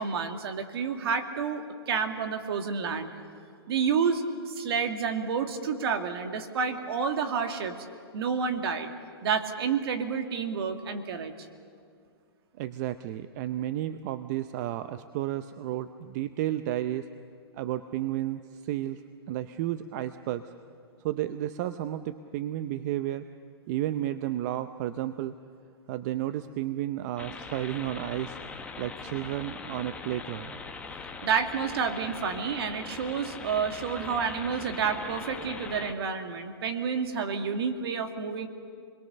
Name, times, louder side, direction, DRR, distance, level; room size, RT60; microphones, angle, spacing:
voice 1, 0.0-3.1 3.7-7.7 8.1-8.9 9.2-11.3 31.2-38.5, right 6 dB, 65° right, 6 dB, 2.2 m, -29 dB
voice 2, 12.6-17.1 17.5-19.0 19.3-20.5 21.0-23.2 23.7-25.3 25.9-28.4 28.8-30.6, right 13 dB, 40° right, 11 dB, 0.7 m, -32 dB
sound 1, 27.2-35.9, left 4 dB, 10° left, 1.3 m, -41 dB
28.5 x 22.0 x 6.8 m, 2.2 s
hypercardioid pair, 140°, 14 cm